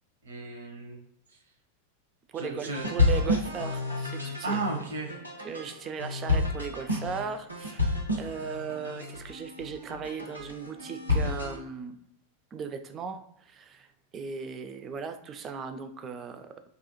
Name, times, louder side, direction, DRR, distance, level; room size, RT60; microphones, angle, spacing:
voice 1, 0.2-1.0 2.3-2.9 4.2-5.2, right 3 dB, 65° right, 1 dB, 0.6 m, -34 dB
voice 2, 2.3-4.6 5.4-12.0 12.5-13.9 14.1-16.6, right 6 dB, 25° right, 8 dB, 0.3 m, -37 dB
sound 1, 2.7-11.6, left 2 dB, 90° left, 0.5 m, -30 dB
2.4 x 2.0 x 2.9 m, 0.78 s
figure-of-eight pair, 90°, 0 cm